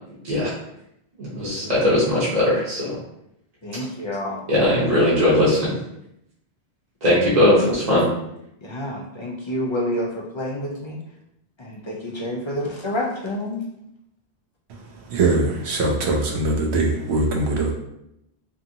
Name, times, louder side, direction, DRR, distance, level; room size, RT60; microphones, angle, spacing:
voice 1, 1.2-2.9 4.5-5.7 7.0-8.1, left 1 dB, 40° right, -9 dB, 0.9 m, -19 dB
voice 2, 3.6-4.4 8.6-10.1 10.3-11.0 11.6-13.7, left 1 dB, 50° left, -3 dB, 0.3 m, -28 dB
voice 3, 15.1-17.7, right 2 dB, 80° right, 1 dB, 0.9 m, -21 dB
2.7 x 2.7 x 2.6 m, 0.81 s
omnidirectional pair, 1.1 m